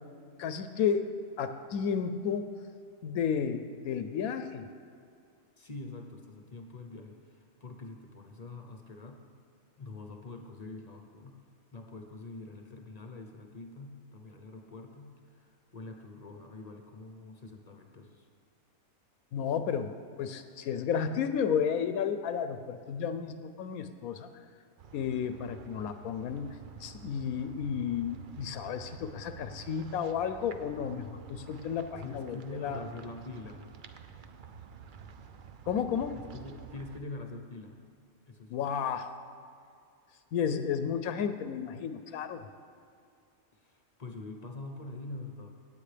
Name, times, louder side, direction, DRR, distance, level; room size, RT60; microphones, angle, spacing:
voice 1, 0.4-1.0 1.4-2.4 3.0-4.7 19.3-24.3 24.9-26.6 26.8-32.8 35.7-36.2 38.5-39.1 40.3-42.4, left 7 dB, 80° left, 10 dB, 1.0 m, -32 dB
voice 2, 5.6-9.2 9.8-11.5 11.7-18.3 32.0-33.7 36.1-37.8 38.3-38.7 43.5-45.5, left 3 dB, 35° left, 4 dB, 0.7 m, -45 dB
sound 1, 24.8-37.0, right 7 dB, 70° right, 0.4 m, -49 dB
17.0 x 8.9 x 3.3 m, 2.4 s
omnidirectional pair, 1.5 m